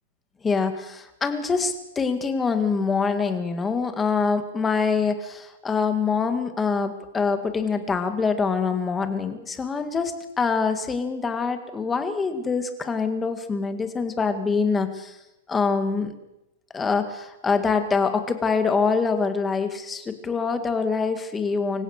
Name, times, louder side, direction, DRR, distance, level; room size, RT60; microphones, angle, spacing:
voice 1, 0.4-15.2 15.5-16.1 16.7-21.8, left 5 dB, 10° left, 8 dB, 1.9 m, -25 dB
25.5 x 16.0 x 6.6 m, 0.93 s
supercardioid pair, 155°, 0 cm